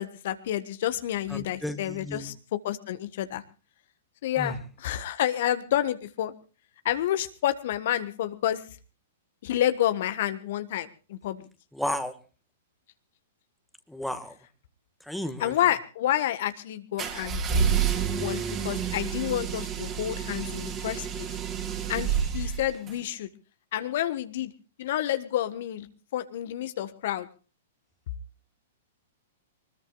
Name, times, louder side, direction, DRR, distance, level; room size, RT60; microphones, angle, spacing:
voice 1, 0.0-2.3 2.6-3.4 4.2-6.3 6.8-8.6 9.4-11.4 15.4-17.7 18.2-21.3 21.9-23.3 23.7-24.5 24.8-25.9 26.1-27.3, left 12 dB, 55° left, 11 dB, 1.5 m, -29 dB
voice 2, 1.3-2.3 4.4-4.6 11.7-12.2 13.9-14.4 15.0-15.6, left 1 dB, ahead, 8 dB, 1.8 m, -33 dB
sound 1, 17.0-23.0, right 7 dB, 25° right, 3.9 m, -29 dB
24.5 x 20.5 x 2.4 m, 0.35 s
figure-of-eight pair, 105°, 0 cm